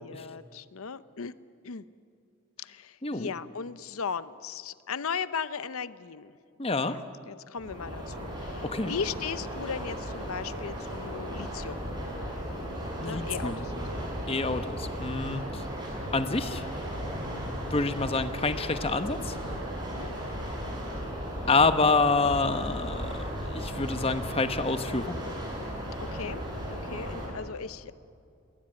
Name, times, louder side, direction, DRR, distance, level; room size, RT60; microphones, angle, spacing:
voice 1, 0.0-1.3 1.6-1.8 2.6-6.3 6.7-11.8 13.0-14.0 19.9-20.1 26.1-27.9, left 6 dB, 85° left, 15 dB, 0.7 m, -37 dB
voice 2, 6.6-7.0 8.6-9.0 13.0-13.6 14.3-15.6 16.1-16.6 17.7-19.4 21.5-25.2, left 3 dB, 25° left, 10 dB, 1.0 m, -27 dB
sound 1, 7.6-27.3, equal, 20° right, 5.8 m, -35 dB
20.5 x 19.5 x 8.8 m, 2.4 s
head